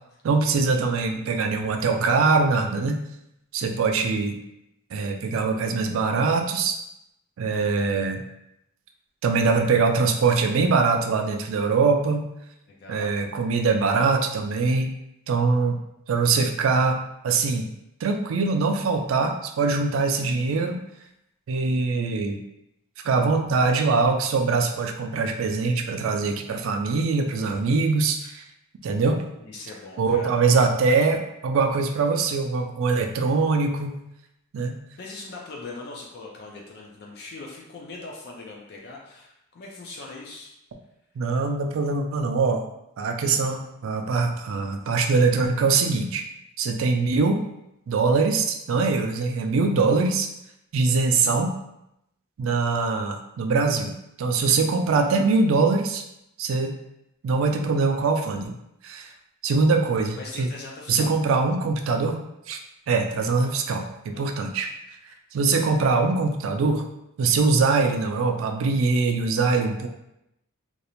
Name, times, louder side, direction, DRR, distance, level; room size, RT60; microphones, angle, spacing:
voice 1, 0.2-3.0 3.5-4.4 4.9-6.8 7.4-8.2 9.2-12.3 12.9-14.9 15.3-15.8 16.1-17.7 18.0-20.8 21.5-22.4 23.0-28.4 28.8-29.2 30.0-34.0 34.5-34.8 41.2-42.6 43.0-46.2 46.6-47.4 47.9-50.3 50.7-51.5 52.4-56.0 56.4-56.7 57.2-58.5 58.8-59.1 59.4-60.5 60.9-62.2 62.5-62.6 62.9-64.7 65.3-66.9 67.2-69.9, right 4 dB, 60° right, 5 dB, 0.3 m, -23 dB
voice 2, 12.7-13.2 29.4-30.5 35.0-40.5 60.2-61.1 63.5-63.6 64.1-64.3, left 3 dB, 45° left, -1 dB, 0.4 m, -41 dB
2.5 x 2.0 x 2.9 m, 0.83 s
head